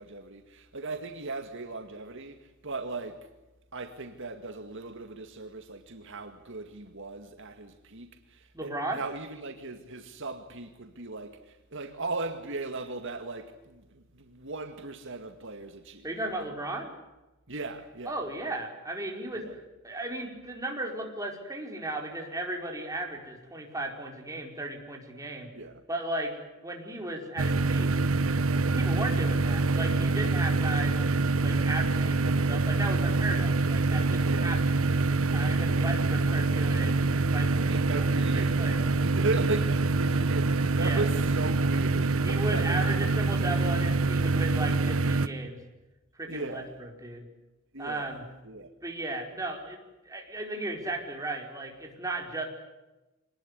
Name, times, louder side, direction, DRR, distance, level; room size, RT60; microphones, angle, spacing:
voice 1, 0.0-3.3 3.7-16.6 17.5-18.2 19.3-19.6 25.5-25.8 34.2-34.5 35.7-35.9 37.7-43.0 46.3-46.7 47.7-48.2 48.4-48.7, right 3 dB, 65° right, 2.1 m, -37 dB
voice 2, 8.5-9.0 16.0-16.9 18.1-19.5 19.8-25.5 25.9-27.9 28.7-30.9 31.4-34.8 35.3-37.9 38.3-38.8 40.8-41.0 42.2-45.6 46.1-47.2 47.8-48.2 48.8-49.8 50.0-52.4, right 2 dB, 15° right, 5.0 m, -35 dB
sound 1, 27.4-45.3, right 3 dB, 80° right, 1.3 m, -25 dB
26.5 x 20.0 x 9.9 m
head